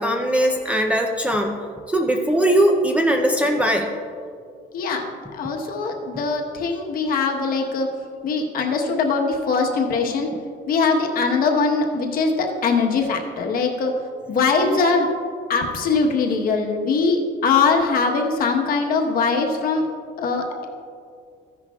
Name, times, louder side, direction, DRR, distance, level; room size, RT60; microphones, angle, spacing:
voice 1, 0.0-1.6 1.9-3.9, right 1 dB, 5° right, 2 dB, 0.5 m, -20 dB
voice 2, 4.7-5.0 5.3-7.9 8.2-10.3 10.7-13.9 14.3-15.1 15.5-19.9 20.2-20.7, left 4 dB, 50° left, 2 dB, 1.1 m, -21 dB
14.5 x 10.5 x 2.3 m, 2.3 s
cardioid pair, 175°, 19 cm